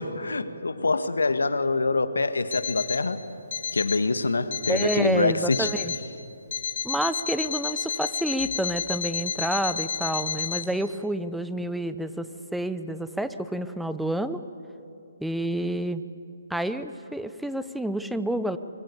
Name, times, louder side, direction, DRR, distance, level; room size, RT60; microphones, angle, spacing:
voice 1, 0.0-3.2 3.7-5.7, left 3 dB, 85° left, 11 dB, 1.6 m, -25 dB
Alarm, 2.5-3.1 3.5-4.1 4.5-5.1 5.5-6.1 6.5-10.6, left 7 dB, 55° left, 2.4 m, -31 dB
voice 2, 4.7-5.9 6.8-14.4 15.2-16.0 16.5-18.6, right 1 dB, ahead, 11 dB, 0.8 m, -29 dB
24.5 x 24.0 x 8.5 m, 2.8 s
hypercardioid pair, 145°, 0 cm